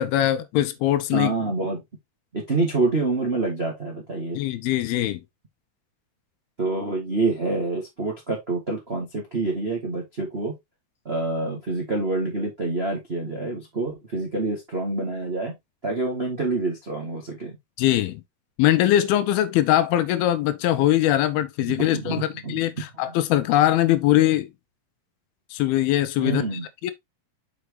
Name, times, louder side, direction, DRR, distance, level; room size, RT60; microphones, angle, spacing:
voice 1, 0.0-1.3 4.3-5.2 17.8-18.2 18.6-24.5 25.5-26.4 26.8-26.9, left 13 dB, 80° left, 2.5 m, -21 dB
voice 2, 1.1-1.8 2.3-4.4 6.6-10.5 11.0-15.5 15.8-17.5 21.7-22.6 26.2-26.6, right 3 dB, 50° right, 0.7 m, -27 dB
6.1 x 6.0 x 2.9 m
omnidirectional pair, 4.4 m